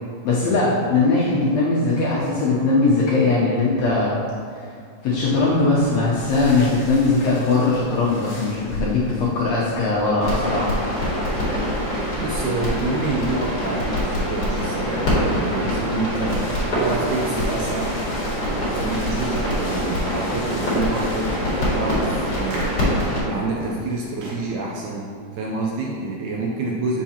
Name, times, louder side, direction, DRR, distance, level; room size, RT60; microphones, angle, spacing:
voice 1, 0.2-4.1 4.5-4.7 5.0-10.8, left 3 dB, 75° left, -6 dB, 1.6 m, -20 dB
sound 1, 5.1-21.4, left 1 dB, 55° left, 1.2 m, -39 dB
sound 2, 10.2-23.2, equal, 40° left, 1.6 m, -24 dB
voice 2, 12.2-18.0 18.5-21.3 21.7-22.8 23.2-27.0, right 3 dB, 80° right, -2 dB, 1.8 m, -27 dB
sound 3, 20.6-24.6, right 1 dB, 60° right, 1.9 m, -37 dB
7.3 x 5.7 x 2.8 m, 2.2 s
omnidirectional pair, 3.9 m